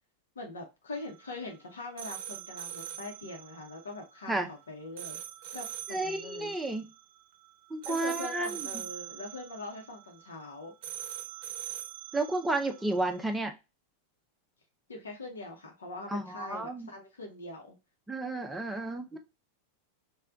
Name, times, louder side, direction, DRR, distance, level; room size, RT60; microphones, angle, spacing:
voice 1, 0.3-5.2 5.5-5.7 6.0-6.5 7.9-10.7 14.9-17.8, left 2 dB, 65° left, 2 dB, 0.9 m, -42 dB
sound 1, 0.9-13.4, right 11 dB, 45° right, 0.7 m, -44 dB
voice 2, 5.9-6.9 7.7-8.7 12.1-13.5 16.1-16.9 18.1-19.2, right 2 dB, 5° right, 5 dB, 0.6 m, -32 dB
3.3 x 2.3 x 3.7 m, 0.26 s
figure-of-eight pair, 90°, 0 cm